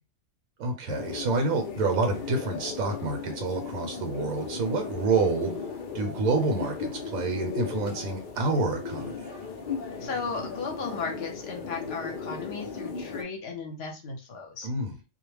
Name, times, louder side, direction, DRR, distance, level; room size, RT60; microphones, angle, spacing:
voice 1, 0.6-5.5 5.9-9.3 14.6-15.0, right 3 dB, 85° right, 5 dB, 1.1 m, -28 dB
sound 1, 0.9-13.2, left 5 dB, 70° left, 0.4 m, -36 dB
voice 2, 10.0-14.7, left 4 dB, 55° left, 2 dB, 0.8 m, -35 dB
2.4 x 2.1 x 3.1 m, 0.31 s
omnidirectional pair, 1.5 m